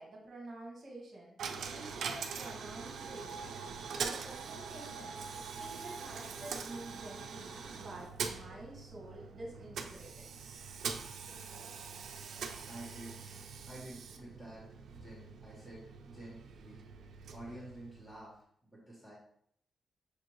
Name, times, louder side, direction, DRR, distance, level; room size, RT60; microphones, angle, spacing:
voice 1, 0.0-3.6 4.0-10.3, right 1 dB, 35° right, -1 dB, 1.4 m, -49 dB
Coin (dropping), 1.4-18.3, right 5 dB, 80° right, 0.4 m, -43 dB
voice 2, 12.7-13.2 13.7-16.9 17.3-19.1, right 1 dB, 10° left, -6 dB, 1.3 m, -50 dB
6.4 x 2.6 x 3.0 m, 0.68 s
wide cardioid pair, 160°, 0 cm